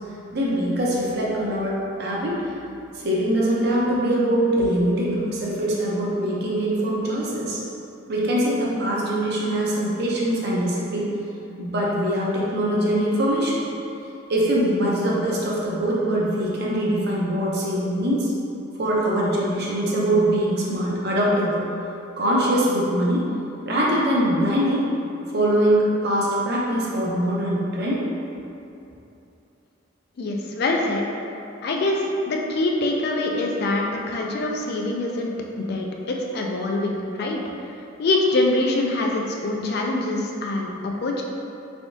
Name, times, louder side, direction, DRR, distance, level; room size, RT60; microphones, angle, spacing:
voice 1, 0.3-2.4 2.9-7.6 8.1-11.1 11.6-13.6 14.3-18.3 18.8-21.6 22.2-23.3 23.6-24.9 25.3-28.0, right 1 dB, 50° right, -5 dB, 0.6 m, -22 dB
voice 2, 30.2-31.0 31.6-37.4 38.0-41.2, left 2 dB, 50° left, 0 dB, 0.3 m, -24 dB
3.4 x 3.4 x 2.6 m, 2.8 s
head